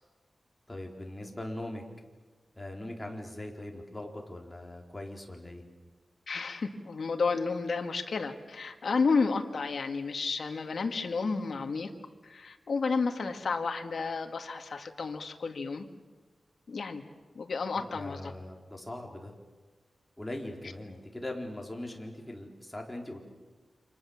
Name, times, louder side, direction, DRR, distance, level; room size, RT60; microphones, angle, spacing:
voice 1, 0.7-1.8 2.6-5.7 17.8-19.3 20.2-23.2, left 1 dB, 15° left, 1 dB, 4.2 m, -40 dB
voice 2, 6.3-11.9 12.2-15.9 16.7-17.0 17.4-18.3, left 4 dB, 70° left, 5 dB, 2.2 m, -31 dB
29.0 x 26.5 x 7.3 m, 1.4 s
wide cardioid pair, 95°, 0 cm